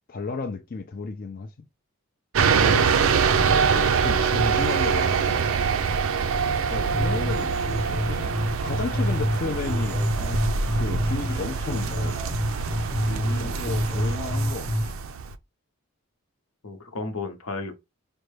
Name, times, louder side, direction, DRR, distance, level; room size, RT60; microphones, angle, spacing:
voice 1, 0.1-1.5 3.7-5.5 7.0-10.4 10.7-12.2 13.4-14.9, left 4 dB, 40° left, 0.4 m, -33 dB
sound 1, 2.3-15.3, right 6 dB, 65° right, 0.4 m, -24 dB
voice 2, 2.6-2.9 6.7-6.9 13.1-13.6 16.6-17.8, left 2 dB, 80° left, 0.9 m, -33 dB
sound 2, 6.9-14.9, equal, 10° left, 0.9 m, -28 dB
5.1 x 2.2 x 3.2 m
head